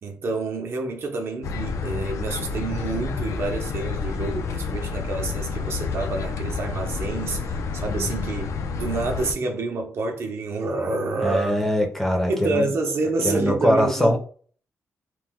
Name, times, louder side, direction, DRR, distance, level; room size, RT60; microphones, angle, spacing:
voice 1, 0.0-8.5 8.8-11.6 12.3-14.2, right 3 dB, 50° right, 0.5 m, -28 dB
sound 1, 1.4-9.3, left 5 dB, 70° left, 0.4 m, -29 dB
voice 2, 7.9-8.3 11.2-12.7 13.2-14.2, equal, 5° left, 0.5 m, -22 dB
2.9 x 2.1 x 3.4 m
wide cardioid pair, 175°, 6 cm